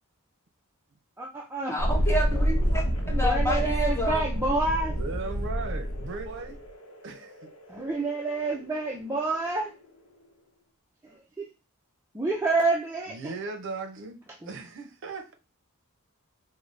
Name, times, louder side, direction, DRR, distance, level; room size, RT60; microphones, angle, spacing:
voice 1, 1.2-1.8 3.2-4.9 7.7-9.7 12.1-13.2, right 3 dB, 10° right, 0.4 m, -28 dB
voice 2, 1.7-4.6, equal, 10° left, 0.8 m, -30 dB
Thunderstorm, 1.8-9.2, equal, 75° left, 0.8 m, -28 dB
voice 3, 4.9-6.6 7.0-7.5 13.1-15.3, right 3 dB, 60° right, 0.6 m, -37 dB
3.8 x 2.1 x 3.2 m
head